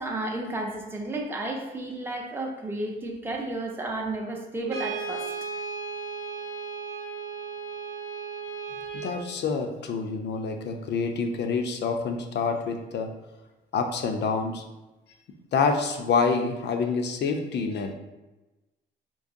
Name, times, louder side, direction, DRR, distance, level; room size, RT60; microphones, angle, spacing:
voice 1, 0.0-5.3, right 2 dB, 10° right, 0 dB, 0.6 m, -32 dB
Brass instrument, 4.7-9.2, right 5 dB, 70° right, 0.8 m, -35 dB
voice 2, 8.9-13.1 13.7-14.6 15.5-17.9, left 5 dB, 60° left, 5 dB, 0.5 m, -27 dB
3.9 x 2.7 x 2.6 m, 1.1 s
cardioid pair, 90°, 20 cm